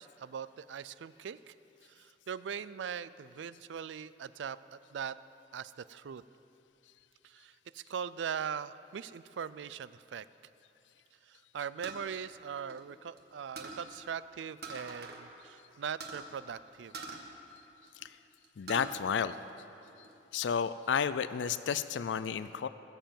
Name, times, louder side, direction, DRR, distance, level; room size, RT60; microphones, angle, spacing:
voice 1, 0.0-1.5 1.9-5.2 5.5-6.2 7.2-10.3 11.3-17.1, right 7 dB, 90° right, 17 dB, 0.4 m, -41 dB
sound 1, 11.8-13.2 13.6-13.9 14.6-15.2 15.5-15.6 16.0-16.3 16.9-18.1 18.4-18.9 19.4-20.1, right 3 dB, 60° right, 1.4 m, -44 dB
voice 2, 18.6-19.4 20.3-22.7, left 7 dB, 85° left, 13 dB, 0.4 m, -32 dB
20.5 x 6.8 x 7.6 m, 2.8 s
head